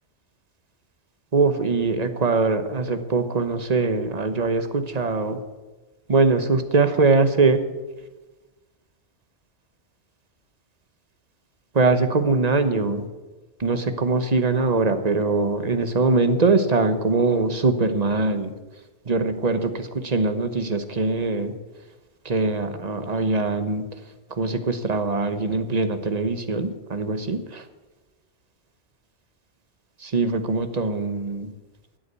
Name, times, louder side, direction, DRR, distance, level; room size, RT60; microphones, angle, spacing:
voice 1, 1.3-5.4 6.1-7.6 11.7-13.0 13.6-18.5 19.1-21.5 22.2-23.8 24.4-27.6 30.0-31.5, right 3 dB, 35° right, 9 dB, 1.1 m, -22 dB
14.0 x 8.4 x 8.3 m, 1.2 s
omnidirectional pair, 1.2 m